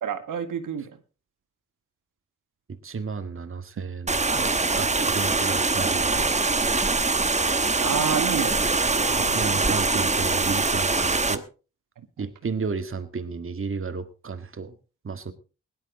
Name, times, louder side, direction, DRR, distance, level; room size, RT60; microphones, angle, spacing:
voice 1, 0.0-1.0 7.8-8.6 8.9-9.8 12.0-12.3, right 8 dB, 85° right, 8 dB, 1.7 m, -30 dB
voice 2, 2.7-6.7 9.3-11.4 12.2-14.7 15.0-15.3, right 5 dB, 45° right, 9 dB, 1.8 m, -33 dB
sound 1, 4.1-11.4, right 3 dB, 25° right, 1.1 m, -23 dB
17.5 x 11.5 x 3.9 m, 0.34 s
cardioid pair, 80°, 31 cm